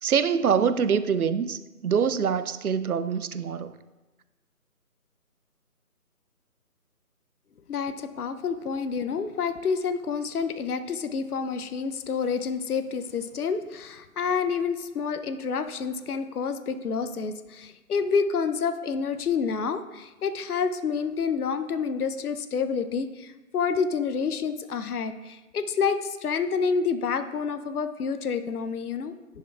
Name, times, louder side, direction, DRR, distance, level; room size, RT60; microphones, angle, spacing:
voice 1, 0.0-3.8, right 7 dB, 70° right, 13 dB, 0.5 m, -25 dB
voice 2, 7.7-29.2, left 5 dB, 75° left, 10 dB, 0.6 m, -28 dB
10.5 x 6.4 x 2.3 m, 1.1 s
figure-of-eight pair, 175°, 45 cm